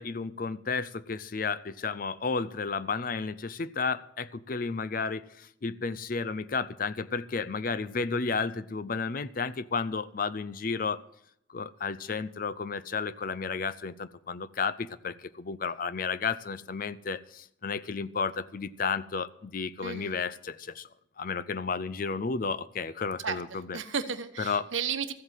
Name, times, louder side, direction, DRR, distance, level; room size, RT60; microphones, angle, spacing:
voice 1, 0.0-11.0 11.5-20.9 21.2-23.8 24.4-24.7, left 4 dB, 45° left, 16 dB, 0.5 m, -32 dB
voice 2, 19.8-20.2 23.2-25.1, right 6 dB, 80° right, 9 dB, 1.1 m, -34 dB
14.5 x 8.1 x 7.4 m, 0.74 s
head